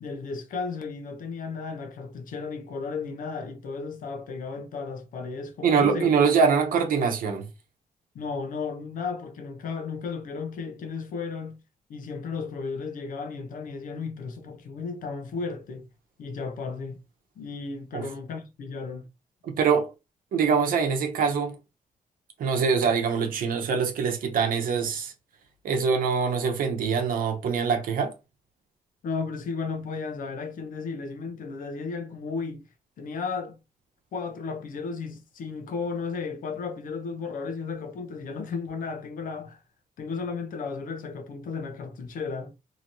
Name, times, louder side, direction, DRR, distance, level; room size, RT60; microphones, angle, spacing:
voice 1, 0.0-6.1 8.1-11.6 11.9-15.9 16.2-17.0 17.4-19.1 29.0-32.7 33.0-33.6 34.1-39.6 40.0-42.5, left 4 dB, 70° left, 0.7 m, -34 dB
voice 2, 5.6-7.5 17.9-18.0 19.4-19.9 20.3-21.6 22.4-25.1 25.6-28.1, right 6 dB, 80° right, 0.8 m, -24 dB
2.9 x 2.8 x 2.6 m
cardioid pair, 110°, 14 cm